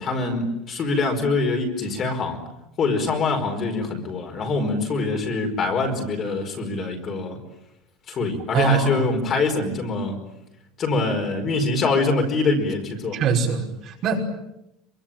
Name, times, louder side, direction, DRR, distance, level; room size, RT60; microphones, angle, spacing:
voice 1, 0.0-2.4 2.8-7.4 8.1-10.2 10.8-13.2, left 3 dB, 30° left, 3 dB, 4.9 m, -24 dB
voice 2, 8.5-9.1 13.1-14.2, right 6 dB, 40° right, 1 dB, 5.7 m, -22 dB
27.0 x 24.5 x 9.0 m, 0.83 s
cardioid pair, 170°, 0 cm